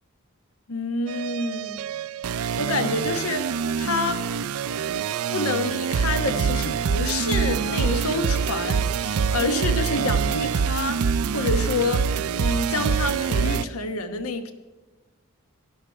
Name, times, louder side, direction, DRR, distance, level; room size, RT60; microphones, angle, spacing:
voice 1, 0.7-1.8 2.6-3.5 3.8-4.3 5.3-12.1 12.3-14.5, left 3 dB, 80° left, 9 dB, 1.2 m, -28 dB
sound 1, 1.1-13.6, right 6 dB, 75° right, 0.4 m, -25 dB
13.5 x 11.5 x 4.5 m, 1.3 s
head